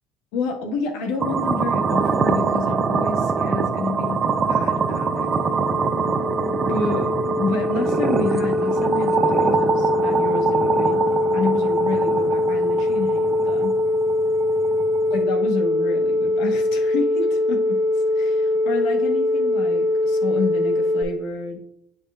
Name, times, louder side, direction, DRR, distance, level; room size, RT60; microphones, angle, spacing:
voice 1, 0.3-5.3 6.6-11.0 11.3-13.7 15.1-21.6, left 4 dB, 85° left, 1 dB, 1.6 m, -29 dB
sound 1, 1.2-15.2, right 5 dB, 30° right, 0.6 m, -24 dB
sound 2, 4.0-21.0, left 2 dB, 20° left, 1.8 m, -22 dB
9.1 x 5.1 x 2.4 m, 0.70 s
cardioid pair, 125°, 0 cm